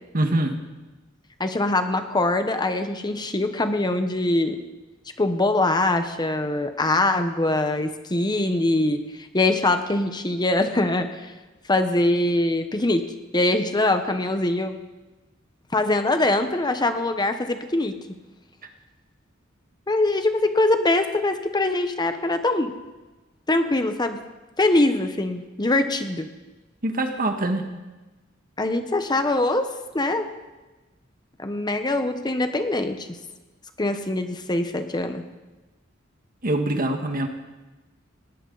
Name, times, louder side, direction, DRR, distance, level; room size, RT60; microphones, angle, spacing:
voice 1, 0.1-0.6 26.8-27.7 36.4-37.3, right 1 dB, 45° right, 5 dB, 1.7 m, -24 dB
voice 2, 1.4-4.6 5.2-11.3 11.7-13.0 13.3-14.8 15.7-17.9 19.9-22.7 23.5-24.2 24.6-26.3 28.6-29.7 29.9-30.3 31.4-33.1 33.8-35.2, left 2 dB, 20° left, 7 dB, 1.0 m, -23 dB
20.0 x 18.0 x 4.0 m, 1.2 s
head